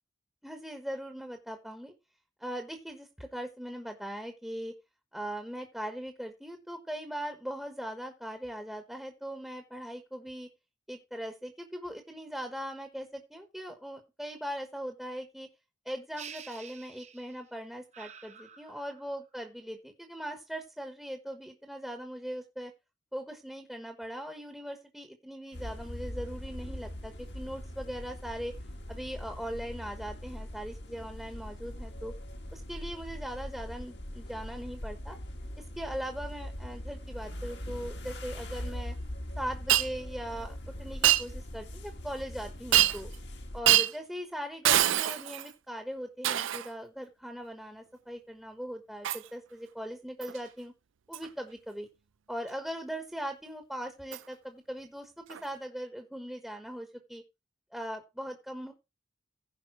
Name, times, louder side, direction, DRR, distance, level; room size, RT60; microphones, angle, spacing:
voice 1, 0.4-1.9 2.4-4.7 5.1-10.5 10.9-15.5 15.8-22.7 23.1-28.6 28.9-32.1 32.5-35.2 35.6-38.9 39.4-43.1 43.5-50.7 51.1-51.9 52.3-57.2 57.7-58.7, equal, ahead, 5 dB, 1.2 m, -40 dB
sound 1, 16.2-17.5 17.9-19.2, right 7 dB, 35° right, 0.9 m, -49 dB
sound 2, 25.5-43.6, equal, 60° left, 1.6 m, -41 dB
Shatter, 39.7-39.9 41.0-41.3 42.7-43.1 43.6-43.9 44.6-45.5 46.2-46.7 49.0-49.3 50.2-50.4 51.1-51.3 54.1-54.2 55.3-55.4, right 13 dB, 80° right, 0.5 m, -24 dB
15.5 x 5.3 x 4.7 m, 0.26 s
head